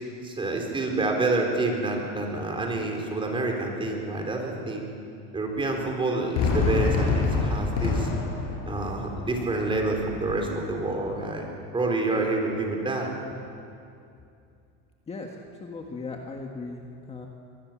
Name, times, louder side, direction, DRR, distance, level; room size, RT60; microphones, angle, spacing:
voice 1, 0.2-4.9 5.3-8.1 8.7-11.5 11.7-13.1, right 2 dB, 15° right, 1 dB, 4.2 m, -28 dB
Fireworks, 6.3-11.4, left 4 dB, 65° left, 6.5 m, -28 dB
voice 2, 15.1-16.8 17.1-17.3, left 3 dB, 20° left, 1 dB, 1.8 m, -37 dB
24.0 x 20.0 x 7.6 m, 2.5 s
cardioid pair, 140°, 30 cm